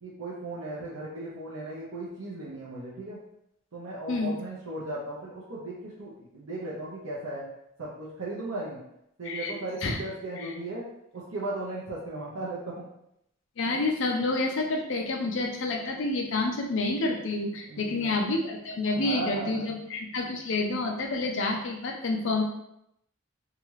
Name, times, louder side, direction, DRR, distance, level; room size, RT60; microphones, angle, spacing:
voice 1, 0.0-3.2 3.7-7.5 7.8-8.8 9.2-10.9 11.1-12.9 17.7-18.1 18.9-19.6, right 2 dB, 85° right, -7 dB, 0.7 m, -36 dB
voice 2, 13.6-22.4, left 2 dB, 65° left, 1 dB, 0.5 m, -28 dB
2.8 x 2.4 x 3.1 m, 0.78 s
head